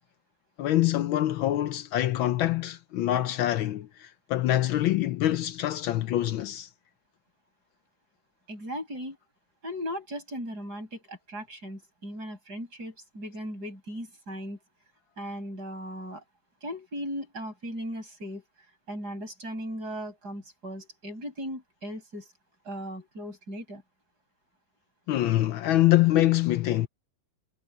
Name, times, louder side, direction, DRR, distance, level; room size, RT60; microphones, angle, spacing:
voice 1, 0.6-6.7 25.1-26.9, left 14 dB, 75° left, 1.4 m, -25 dB
voice 2, 8.5-9.2 9.6-14.6 15.2-16.2 16.6-18.4 18.9-22.3 22.6-23.8, equal, 45° right, 8.2 m, -37 dB
omnidirectional pair, 2.4 m